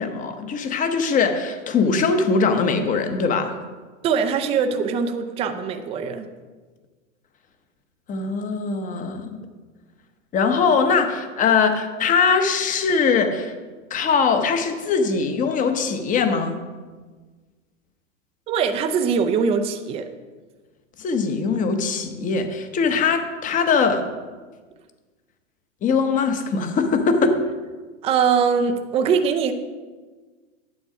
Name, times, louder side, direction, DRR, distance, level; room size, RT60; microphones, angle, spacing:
voice 1, 0.0-3.6 8.1-9.3 10.3-13.5 13.9-16.6 21.0-24.1 25.8-27.5, left 5 dB, 20° left, 8 dB, 0.9 m, -21 dB
voice 2, 4.0-6.3 18.5-20.1 28.0-29.5, right 6 dB, 15° right, 6 dB, 0.5 m, -22 dB
9.5 x 7.2 x 4.9 m, 1.4 s
hypercardioid pair, 125°, 39 cm